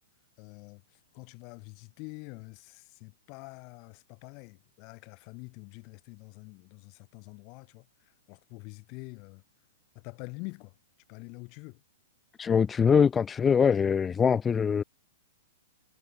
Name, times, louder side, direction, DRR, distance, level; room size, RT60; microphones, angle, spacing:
voice 1, 0.4-0.8 1.1-7.8 8.3-9.4 9.9-10.7 11.1-11.8, left 32 dB, 40° left, 6.1 m, -46 dB
voice 2, 12.4-14.8, left 6 dB, 15° left, 0.3 m, -23 dB
hypercardioid pair, 135°, 0 cm